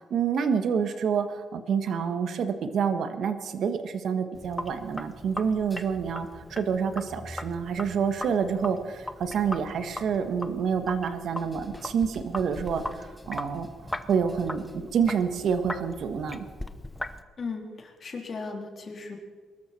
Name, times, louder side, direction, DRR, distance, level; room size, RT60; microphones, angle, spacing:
voice 1, 0.1-13.7 14.1-16.4, right 6 dB, 65° right, 9 dB, 1.4 m, -28 dB
Sink (filling or washing), 4.3-17.2, left 1 dB, 10° left, 1.0 m, -39 dB
voice 2, 17.4-19.2, left 4 dB, 45° left, 2 dB, 3.2 m, -36 dB
22.5 x 13.0 x 4.4 m, 1.5 s
cardioid pair, 90°, 0 cm